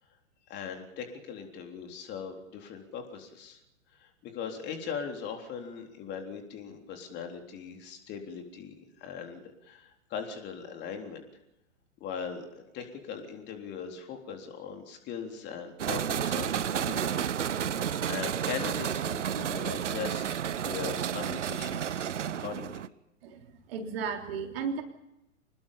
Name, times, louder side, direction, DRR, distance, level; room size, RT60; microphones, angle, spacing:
voice 1, 0.5-3.6 4.0-11.2 12.0-17.3 17.8-22.1 22.4-22.8, left 6 dB, 25° left, 3 dB, 3.8 m, -40 dB
sound 1, 15.8-22.9, right 9 dB, 65° right, 1.0 m, -31 dB
voice 2, 23.2-24.8, right 5 dB, 45° right, 3 dB, 3.5 m, -35 dB
26.5 x 20.5 x 5.7 m, 0.91 s
figure-of-eight pair, 110°, 40 cm